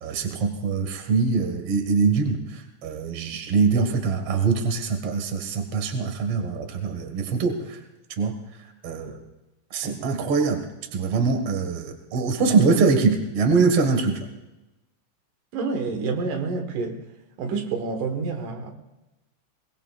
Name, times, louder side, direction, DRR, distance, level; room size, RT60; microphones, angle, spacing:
voice 1, 0.0-7.8 8.2-8.3 8.8-9.2 9.7-10.7 10.9-14.3, right 4 dB, 50° right, 5 dB, 2.4 m, -23 dB
voice 2, 15.5-17.0 17.4-18.7, right 4 dB, 85° right, 4 dB, 3.1 m, -28 dB
22.5 x 20.0 x 2.4 m, 1.0 s
omnidirectional pair, 3.6 m